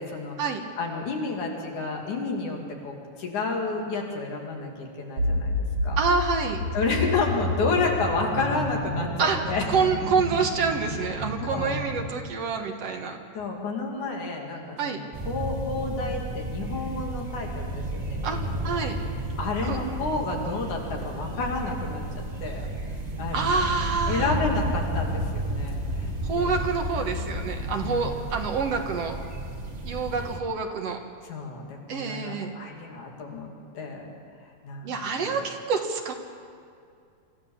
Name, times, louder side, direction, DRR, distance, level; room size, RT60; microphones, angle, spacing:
voice 1, 0.0-0.4 0.8-5.5 5.8-6.0 6.7-9.6 11.4-11.8 13.4-18.8 19.4-22.6 23.2-23.7 24.1-26.5 27.8-28.2 31.3-34.1 34.6-34.9 35.2-35.4, left 3 dB, 80° left, 0 dB, 4.0 m, -30 dB
sound 1, 5.2-12.0, left 1 dB, 75° right, 4.7 m, -30 dB
voice 2, 6.0-6.6 9.2-9.4 9.7-13.2 14.8-15.0 18.2-19.0 19.6-19.8 23.3-24.4 26.2-29.1 29.9-31.0 31.9-32.5 34.8-36.1, right 5 dB, 60° right, 4 dB, 2.3 m, -27 dB
sound 2, 15.1-30.4, right 1 dB, 35° right, 0.6 m, -32 dB
sound 3, 23.6-28.9, left 2 dB, 15° left, 1.6 m, -46 dB
24.5 x 15.0 x 7.2 m, 2.4 s
omnidirectional pair, 3.4 m